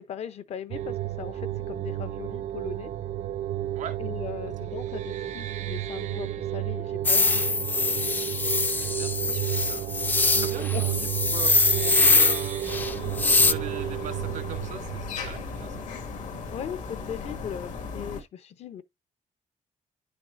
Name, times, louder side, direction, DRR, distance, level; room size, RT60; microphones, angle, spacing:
voice 1, 0.0-2.9 4.0-7.8 10.3-10.8 16.5-18.8, left 9 dB, 55° left, 0.7 m, -39 dB
sound 1, 0.7-16.2, right 13 dB, 70° right, 0.5 m, -32 dB
sound 2, 7.0-13.5, left 3 dB, 15° left, 0.4 m, -23 dB
voice 2, 8.8-12.7 13.1-15.9, right 7 dB, 90° right, 2.0 m, -41 dB
sound 3, 12.7-18.2, left 5 dB, 80° left, 1.9 m, -37 dB
9.9 x 6.0 x 2.5 m
wide cardioid pair, 175°, 13 cm